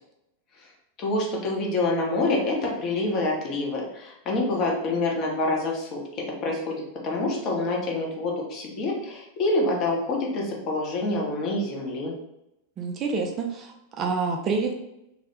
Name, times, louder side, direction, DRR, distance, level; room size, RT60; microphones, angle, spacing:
voice 1, 1.0-12.1, left 2 dB, 35° left, -1 dB, 0.7 m, -27 dB
voice 2, 12.8-14.7, right 4 dB, 30° right, 3 dB, 0.3 m, -28 dB
2.2 x 2.0 x 3.0 m, 0.84 s
figure-of-eight pair, 90°, 0 cm